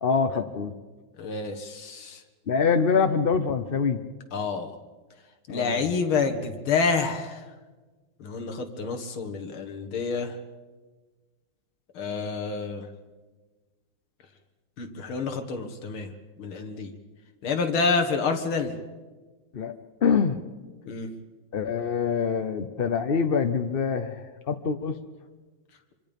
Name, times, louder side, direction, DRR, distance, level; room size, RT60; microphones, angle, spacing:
voice 1, 0.0-0.7 2.5-4.0 5.5-5.8 19.5-19.7 20.0-20.4 21.5-25.0, left 6 dB, 60° left, 8 dB, 0.6 m, -25 dB
voice 2, 1.2-2.2 4.3-4.7 5.5-7.4 8.2-10.4 12.0-12.9 14.8-16.1 16.4-16.9 17.4-18.7 20.9-21.1, left 4 dB, 85° left, 5 dB, 2.5 m, -28 dB
26.0 x 25.0 x 5.3 m, 1.3 s
omnidirectional pair, 2.2 m